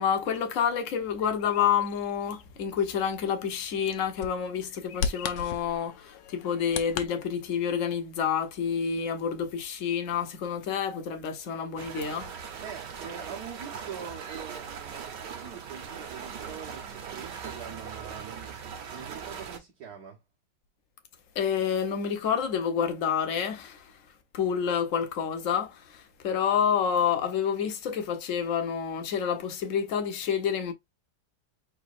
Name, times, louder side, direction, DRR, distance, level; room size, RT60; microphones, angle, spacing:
voice 1, 0.0-12.3 21.3-24.0 24.3-30.7, left 7 dB, 55° left, 1.1 m, -28 dB
Bird vocalization bird call bird song, 1.0-7.1, left 7 dB, 80° left, 1.3 m, -38 dB
sound 1, 11.8-19.6, right 7 dB, 80° right, 1.6 m, -40 dB
voice 2, 12.6-20.2, right 7 dB, 65° right, 1.7 m, -44 dB
4.5 x 4.0 x 2.5 m
omnidirectional pair, 1.9 m